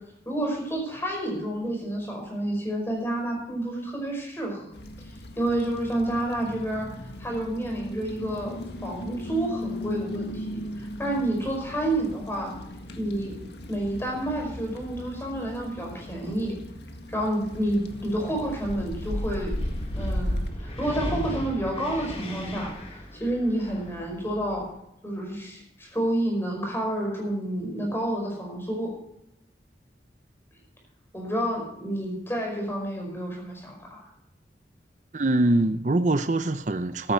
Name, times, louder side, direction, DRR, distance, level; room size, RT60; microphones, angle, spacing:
voice 1, 0.3-4.6 5.4-12.5 13.0-13.4 13.7-16.6 17.1-19.5 19.9-24.6 25.0-28.9 31.1-34.0, right 1 dB, 15° left, 0 dB, 5.4 m, -29 dB
sound 1, 4.7-20.5, left 1 dB, 75° left, 1.8 m, -36 dB
Wind, 17.4-24.7, equal, 35° left, 3.0 m, -38 dB
voice 2, 35.1-37.1, right 2 dB, 45° right, 11 dB, 0.6 m, -23 dB
14.5 x 13.5 x 4.5 m, 0.82 s
head